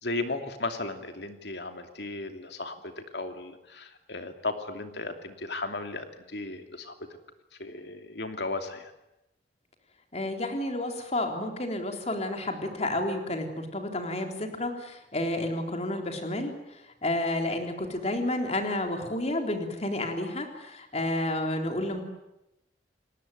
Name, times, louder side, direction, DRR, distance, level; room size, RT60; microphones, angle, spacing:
voice 1, 0.0-6.9 7.6-8.9, left 2 dB, 65° left, 6 dB, 2.9 m, -35 dB
voice 2, 10.1-22.0, left 1 dB, 35° left, 4 dB, 3.8 m, -31 dB
30.0 x 19.0 x 9.4 m, 0.92 s
head